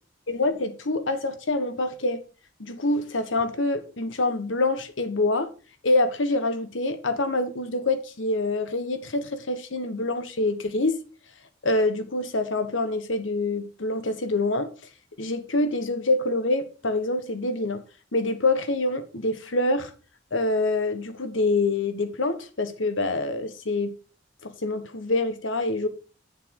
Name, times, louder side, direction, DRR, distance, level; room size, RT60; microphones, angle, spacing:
voice 1, 0.3-2.2 2.6-5.5 5.8-11.0 11.6-14.7 15.2-17.8 18.1-19.9 20.3-23.9 24.4-25.9, left 2 dB, 85° left, 1.3 m, -26 dB
8.6 x 6.9 x 4.8 m
head